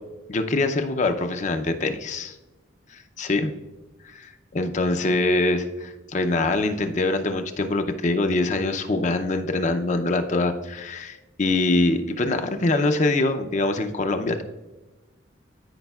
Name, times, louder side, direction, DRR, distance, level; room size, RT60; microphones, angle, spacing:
voice 1, 0.3-2.4 2.9-3.5 4.0-14.4, left 2 dB, 40° left, 7 dB, 0.5 m, -24 dB
13.0 x 5.2 x 2.3 m, 1.1 s
head